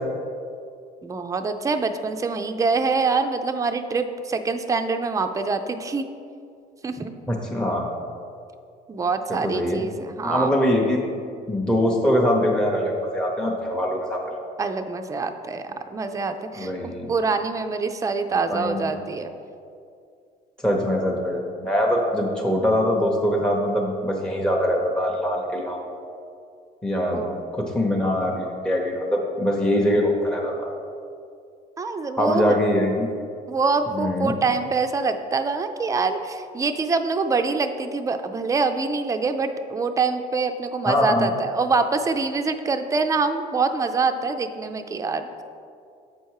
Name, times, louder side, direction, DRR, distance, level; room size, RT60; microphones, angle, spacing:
voice 1, 1.0-6.1 6.8-7.2 8.9-10.5 14.6-19.3 27.0-27.4 31.8-32.6 33.5-45.4, right 4 dB, 20° right, 7 dB, 0.4 m, -25 dB
voice 2, 7.3-7.9 9.3-9.8 10.2-11.0 11.5-14.2 16.5-17.1 18.5-18.9 20.6-25.8 26.8-27.2 27.5-30.7 32.2-33.1 33.9-34.4 40.9-41.3, equal, 5° left, -1 dB, 0.8 m, -23 dB
7.9 x 4.4 x 4.7 m, 2.4 s
cardioid pair, 110°, 17 cm